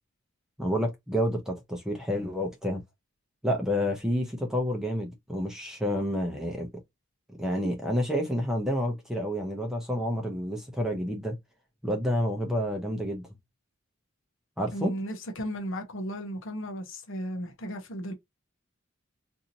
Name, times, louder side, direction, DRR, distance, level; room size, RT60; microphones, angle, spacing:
voice 1, 0.6-2.8 3.4-6.7 7.4-11.4 11.8-13.2 14.6-14.9, equal, ahead, 0.6 m, -29 dB
voice 2, 14.7-18.1, equal, 60° left, 0.7 m, -35 dB
2.7 x 2.6 x 2.7 m
head